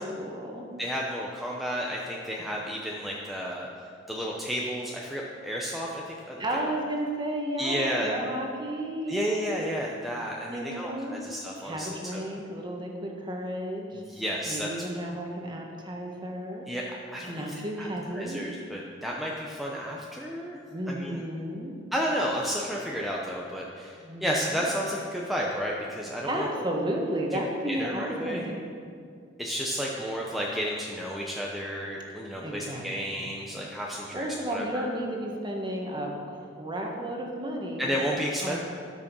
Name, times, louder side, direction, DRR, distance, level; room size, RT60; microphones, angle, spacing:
voice 1, 0.0-0.7 6.4-9.6 10.5-11.2 11.6-14.0 14.5-16.7 17.3-18.5 20.7-21.8 24.0-24.7 26.3-28.5 32.4-32.9 34.1-37.9 38.4-38.6, right 1 dB, 25° right, 0 dB, 1.5 m, -33 dB
voice 2, 0.8-3.7 4.1-6.7 7.6-8.1 9.1-12.2 13.9-14.7 16.7-20.6 20.9-21.2 21.9-26.5 27.3-27.4 27.7-28.5 29.4-34.8 37.8-38.6, equal, ahead, -3 dB, 0.7 m, -32 dB
12.5 x 6.3 x 6.2 m, 2.3 s
head